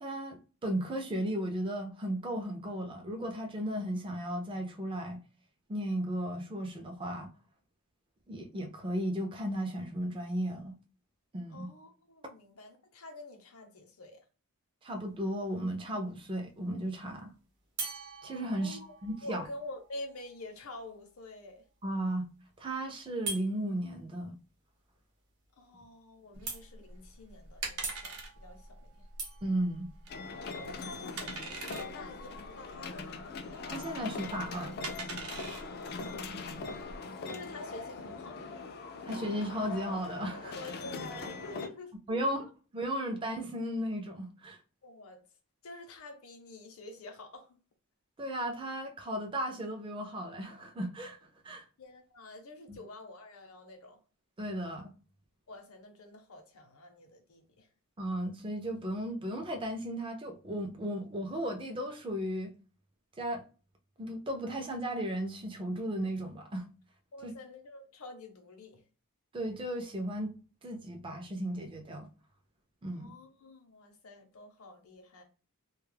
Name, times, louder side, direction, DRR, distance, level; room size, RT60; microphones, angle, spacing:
voice 1, 0.0-5.2 5.7-7.3 8.3-10.7 11.3-11.7 14.8-17.3 18.2-19.4 21.8-22.3 22.6-24.4 29.4-29.9 33.7-34.7 39.1-40.6 42.1-42.5 42.7-44.6 48.2-51.2 51.4-51.6 52.7-52.8 54.4-54.9 58.0-62.5 63.2-63.4 64.0-66.7 67.2-67.3 69.3-70.3 70.6-72.1 72.8-73.1, right 1 dB, 25° right, 0.4 m, -35 dB
voice 2, 11.5-14.2 18.6-18.8 19.2-21.6 25.6-29.1 30.5-33.2 35.5-36.7 37.3-38.7 40.5-41.9 42.2-42.5 44.8-45.2 45.6-47.6 51.8-54.0 55.5-57.7 67.1-68.8 72.9-75.2, left 2 dB, 75° left, 0.7 m, -48 dB
sound 1, 15.0-15.5 17.8-21.4 23.2-23.5 25.4-25.5 25.9-26.0 26.4-27.0 27.8-30.5, right 4 dB, 55° right, 0.8 m, -43 dB
sound 2, 26.3-37.0, right 3 dB, 80° right, 0.7 m, -44 dB
sound 3, 30.1-41.7, left 4 dB, 45° left, 0.3 m, -41 dB
2.2 x 2.0 x 3.2 m
head